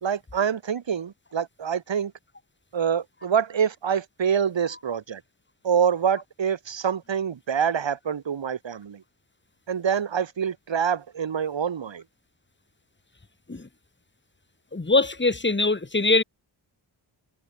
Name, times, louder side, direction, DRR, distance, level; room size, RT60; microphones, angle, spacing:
voice 1, 0.0-2.1 2.7-5.2 5.6-9.0 9.7-12.0, right 7 dB, 80° right, 3.2 m, -26 dB
voice 2, 14.7-16.2, left 3 dB, 25° left, 6.7 m, -22 dB
wide cardioid pair, 170°, 44 cm